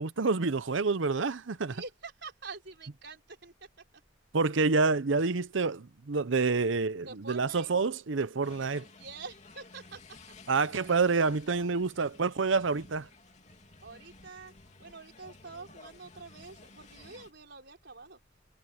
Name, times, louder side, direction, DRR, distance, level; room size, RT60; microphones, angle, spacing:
voice 1, 0.0-1.8 4.3-8.8 10.5-13.1, right 4 dB, 75° right, 0.7 m, -28 dB
voice 2, 1.6-4.0 7.0-7.7 9.0-10.2 13.8-14.5 14.8-18.2, right 4 dB, 60° right, 5.1 m, -46 dB
sound 1, 8.4-17.3, left 3 dB, 35° left, 2.9 m, -54 dB
head